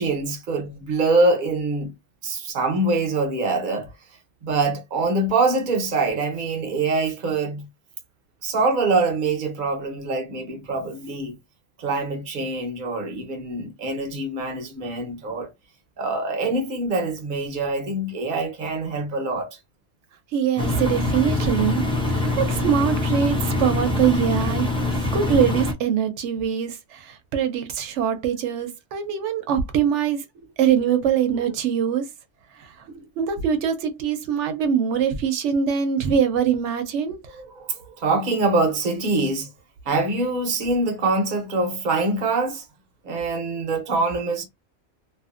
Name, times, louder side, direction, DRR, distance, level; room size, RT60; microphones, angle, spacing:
voice 1, 0.0-1.9 2.2-3.9 4.4-7.6 8.4-11.4 11.8-15.5 16.0-19.6 31.5-31.6 32.9-33.0 37.3-39.5 39.9-42.6 43.0-44.4, right 3 dB, 50° right, 0.9 m, -24 dB
voice 2, 20.3-24.7 25.1-30.2 30.6-32.0 33.2-37.2, right 8 dB, 90° right, 0.9 m, -23 dB
Engine, 20.6-25.7, left 2 dB, 10° left, 0.3 m, -24 dB
2.6 x 2.5 x 2.4 m
omnidirectional pair, 1.2 m